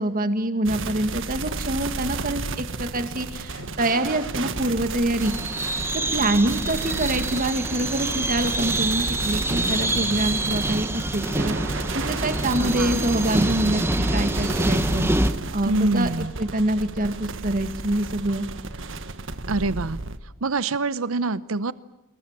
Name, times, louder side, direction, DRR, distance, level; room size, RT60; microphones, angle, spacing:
voice 1, 0.0-5.3 5.9-13.8 14.1-15.1 15.5-16.1 16.4-18.5, right 1 dB, 45° right, 8 dB, 2.1 m, -25 dB
sound 1, 0.7-20.2, right 3 dB, 65° right, 1.5 m, -33 dB
sound 2, 1.3-1.6 2.4-2.7 3.5-3.8 4.6-4.9 5.7-6.0 6.8-7.3 7.9-8.2 8.9-9.3 10.1-10.5 11.2-11.6 12.3-12.7 13.4-13.9, left 2 dB, 80° left, 3.6 m, -43 dB
sound 3, 5.2-15.3, right 1 dB, 10° right, 1.4 m, -26 dB
voice 2, 12.6-13.1 15.6-16.3 19.5-20.0 20.4-21.7, right 3 dB, 85° right, 16 dB, 0.8 m, -25 dB
27.0 x 22.0 x 7.4 m, 0.95 s
head